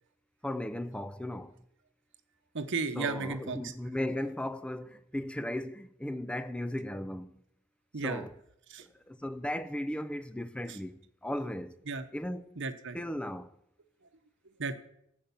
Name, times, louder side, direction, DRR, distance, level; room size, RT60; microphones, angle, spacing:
voice 1, 0.4-1.6 3.0-7.4 8.0-8.4 8.8-11.8 12.1-12.6 12.9-13.5, left 1 dB, 5° left, 0.4 m, -36 dB
voice 2, 2.5-3.7 7.9-8.2 8.7-8.9 10.7-10.8 11.9-12.0 12.6-13.0 14.6-14.7, right 4 dB, 60° right, 0.9 m, -34 dB
14.5 x 5.2 x 7.0 m
head